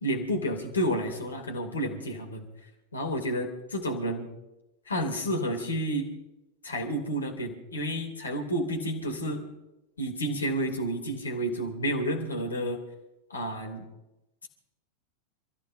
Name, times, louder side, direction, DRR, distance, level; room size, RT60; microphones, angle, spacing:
voice 1, 0.0-2.4 2.9-4.3 4.9-6.1 6.6-9.4 10.0-12.8 13.3-13.8, equal, 75° left, 3 dB, 2.8 m, -30 dB
28.0 x 15.0 x 2.7 m, 0.97 s
figure-of-eight pair, 90°, 0 cm